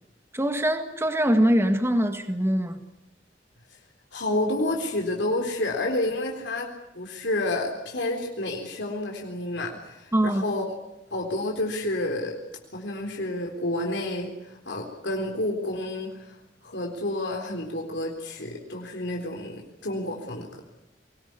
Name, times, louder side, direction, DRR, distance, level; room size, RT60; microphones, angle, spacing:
voice 1, 0.3-2.8 10.1-10.4, equal, 15° right, 7 dB, 1.9 m, -23 dB
voice 2, 4.1-6.7 6.9-10.8 11.1-12.3 12.7-16.4 16.6-20.6, left 1 dB, 70° left, 1 dB, 3.9 m, -29 dB
24.0 x 19.5 x 9.7 m, 0.85 s
head